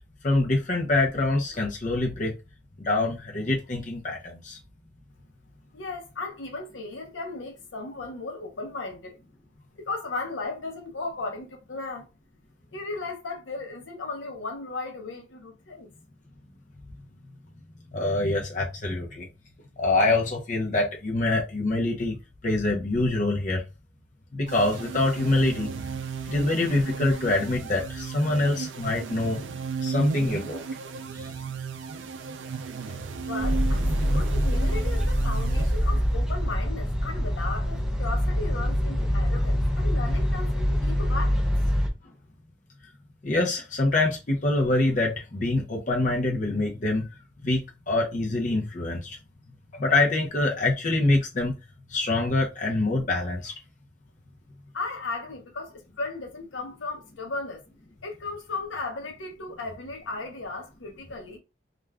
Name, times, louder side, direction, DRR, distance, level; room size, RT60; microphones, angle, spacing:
voice 1, 0.2-2.3 2.8-4.6 17.9-19.3 19.8-22.2 22.4-23.6 24.3-25.7 26.3-29.4 29.8-30.6 31.1-31.3 43.2-47.1 47.4-47.6 47.9-49.2 49.7-51.5 51.9-53.5, left 2 dB, 40° left, 0.6 m, -25 dB
voice 2, 5.7-9.2 9.8-12.1 12.7-15.9 33.2-41.5 54.7-57.6 58.0-61.4, left 3 dB, 85° left, 0.8 m, -36 dB
sound 1, 24.5-36.2, right 5 dB, 80° right, 0.4 m, -34 dB
sound 2, 33.4-41.9, equal, 5° right, 0.4 m, -25 dB
2.4 x 2.2 x 3.3 m
head